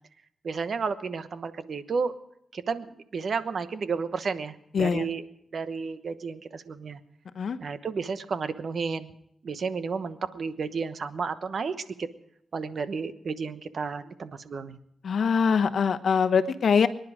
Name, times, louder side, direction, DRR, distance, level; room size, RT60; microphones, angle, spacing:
voice 1, 0.4-2.1 2.5-5.2 5.5-7.0 7.6-9.1 9.4-12.1 12.5-14.8, right 5 dB, 60° right, 11 dB, 1.1 m, -32 dB
voice 2, 4.7-5.0 7.4-7.6 15.0-16.9, left 6 dB, 70° left, 10 dB, 1.0 m, -23 dB
24.0 x 10.5 x 5.0 m, 0.74 s
cardioid pair, 80°, 0 cm